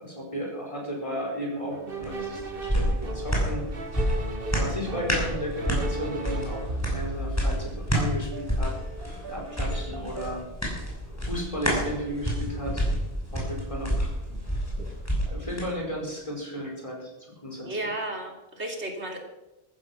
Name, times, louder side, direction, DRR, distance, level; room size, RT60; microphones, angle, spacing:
voice 1, 0.0-3.7 3.9-8.7 9.3-10.4 11.3-12.9 13.3-14.1 15.2-17.1 17.4-17.9, equal, 30° left, -1 dB, 5.3 m, -34 dB
sound 1, 1.7-10.4, right 2 dB, 55° right, 1.8 m, -36 dB
sound 2, 2.0-15.7 16.1-16.2, equal, 15° left, 6.1 m, -29 dB
voice 2, 17.6-19.2, right 1 dB, 85° right, 2 dB, 3.3 m, -33 dB
14.5 x 14.5 x 6.0 m, 1.0 s
omnidirectional pair, 1.1 m